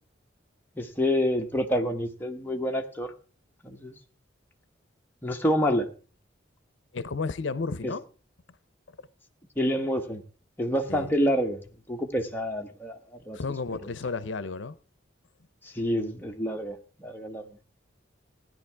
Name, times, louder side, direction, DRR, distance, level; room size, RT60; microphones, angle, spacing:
voice 1, 0.8-3.1 3.6-4.0 5.2-5.9 7.8-7.9 9.6-10.2 10.6-13.4 15.6-17.4, equal, 10° left, 1.1 m, -28 dB
voice 2, 6.9-8.0 8.9-9.0 10.9-11.1 13.3-14.8, left 4 dB, 75° left, 0.6 m, -32 dB
16.0 x 10.5 x 3.4 m
head